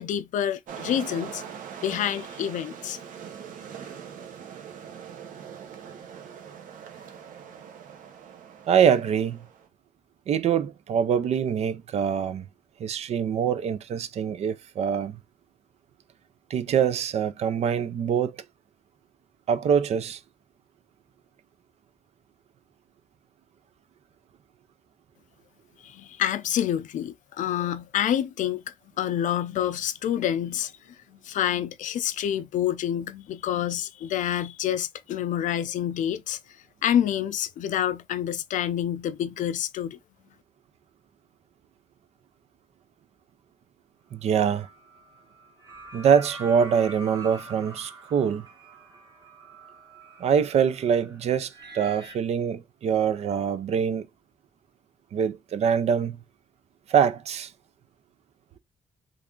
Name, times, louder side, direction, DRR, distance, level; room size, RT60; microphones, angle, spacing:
voice 1, 0.0-1.4 1.8-3.0 25.8-28.6 29.0-30.7 31.1-36.4 36.8-40.0, left 10 dB, 75° left, 0.4 m, -27 dB
sound 1, 0.7-9.7, right 8 dB, 85° right, 0.7 m, -42 dB
voice 2, 8.7-9.5 10.3-12.5 12.8-15.2 16.5-18.4 19.5-20.2 44.1-44.7 45.9-48.5 50.2-54.1 55.1-56.2 56.9-57.5, right 7 dB, 55° right, 0.4 m, -24 dB
sound 2, 44.3-52.1, right 2 dB, 30° right, 1.1 m, -45 dB
3.2 x 2.4 x 3.6 m
wide cardioid pair, 175°, 13 cm